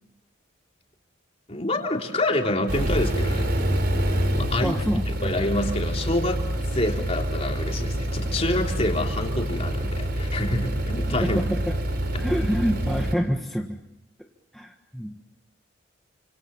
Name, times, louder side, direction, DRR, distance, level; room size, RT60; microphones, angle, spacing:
voice 1, 1.5-3.5 4.0-4.8 5.1-6.4 6.7-11.4, left 1 dB, 35° left, 2 dB, 3.5 m, -27 dB
sound 1, 2.7-13.2, right 1 dB, 55° right, 4.5 m, -26 dB
voice 2, 4.6-5.3 11.2-11.8 12.2-13.8 14.5-15.2, equal, ahead, 1 dB, 1.6 m, -27 dB
29.5 x 26.5 x 7.2 m, 0.86 s
head